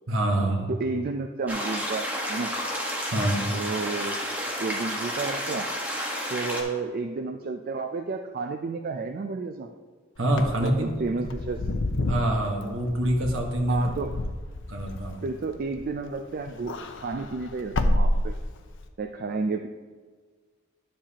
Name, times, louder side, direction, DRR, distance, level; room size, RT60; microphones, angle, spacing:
voice 1, 0.1-0.7 3.1-3.5 10.2-11.2 12.0-13.9 14.7-15.2, right 1 dB, 60° right, 2 dB, 1.3 m, -26 dB
voice 2, 0.7-2.5 3.5-4.2 4.6-5.7 6.3-9.7 10.6-11.6 13.7-14.1 15.2-16.8 17.0-18.3 19.0-19.7, right 4 dB, 40° right, 6 dB, 0.4 m, -31 dB
sound 1, 1.5-6.6, equal, 5° right, 1.2 m, -31 dB
Wind / Car, 10.2-16.1 16.4-18.8, left 1 dB, 60° left, 0.6 m, -29 dB
10.5 x 7.3 x 2.9 m, 1.5 s
head